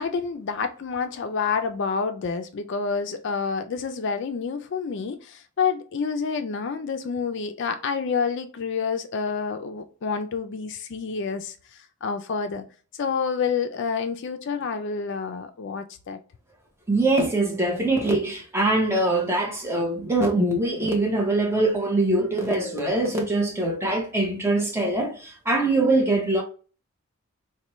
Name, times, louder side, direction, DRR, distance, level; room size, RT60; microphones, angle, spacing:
voice 1, 0.0-12.6 12.9-16.2, left 5 dB, 55° left, 0.4 m, -28 dB
voice 2, 16.9-26.4, right 2 dB, 10° right, 0.8 m, -23 dB
4.2 x 2.1 x 3.1 m
head